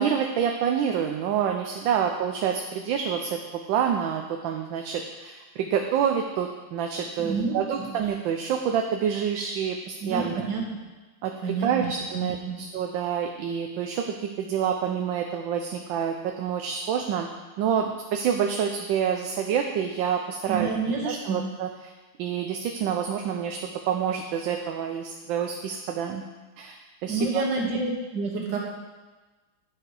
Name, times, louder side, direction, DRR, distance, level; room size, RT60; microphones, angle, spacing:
voice 1, 0.0-3.4 3.7-10.4 11.2-17.3 17.6-20.7 21.0-21.7 22.2-26.2 26.6-27.4, right 8 dB, 75° right, 3 dB, 1.3 m, -27 dB
voice 2, 7.2-7.9 10.0-10.6 11.4-12.6 20.5-21.4 27.1-28.6, right 4 dB, 60° right, -1 dB, 2.0 m, -29 dB
10.5 x 4.8 x 4.8 m, 1.2 s
omnidirectional pair, 2.2 m